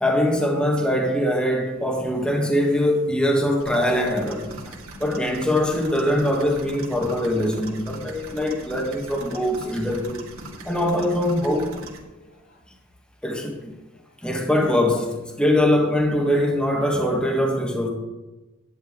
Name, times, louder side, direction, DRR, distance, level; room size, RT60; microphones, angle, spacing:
voice 1, 0.0-4.7 5.0-10.3 10.6-11.7 13.2-13.8 14.2-17.9, left 1 dB, 5° left, 1.2 m, -22 dB
sound 1, 3.6-12.0, right 1 dB, 85° right, 2.0 m, -40 dB
voice 2, 12.2-12.8 13.9-14.4 16.2-16.8, left 1 dB, 75° left, 3.8 m, -53 dB
10.5 x 9.6 x 3.6 m
head